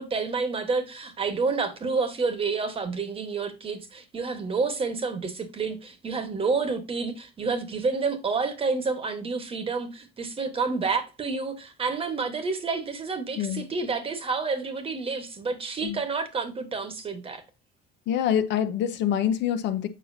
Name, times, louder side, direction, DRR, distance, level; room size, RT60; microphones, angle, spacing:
voice 1, 0.0-17.4, right 4 dB, 30° right, 1.3 m, -29 dB
voice 2, 18.1-19.9, left 9 dB, 70° left, 0.8 m, -25 dB
7.3 x 5.8 x 2.7 m
cardioid pair, 135°, 19 cm